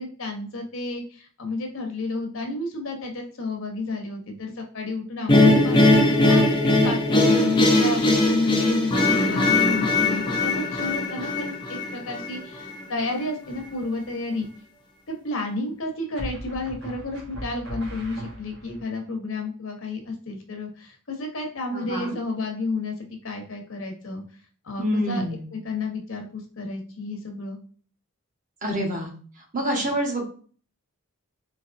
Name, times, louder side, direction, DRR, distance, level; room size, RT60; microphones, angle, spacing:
voice 1, 0.0-14.4 15.1-23.0 23.2-24.2 24.6-25.2 25.5-27.6, left 3 dB, 65° left, 3 dB, 0.9 m, -31 dB
sound 1, 5.3-12.4, left 2 dB, 20° left, 0.6 m, -20 dB
sound 2, 13.5-14.0 16.2-18.8, right 1 dB, 60° right, 1.5 m, -38 dB
voice 2, 21.7-22.2 24.8-25.5 28.6-29.1 29.5-30.2, equal, 35° right, 0 dB, 1.1 m, -26 dB
4.1 x 2.9 x 2.5 m, 0.42 s
head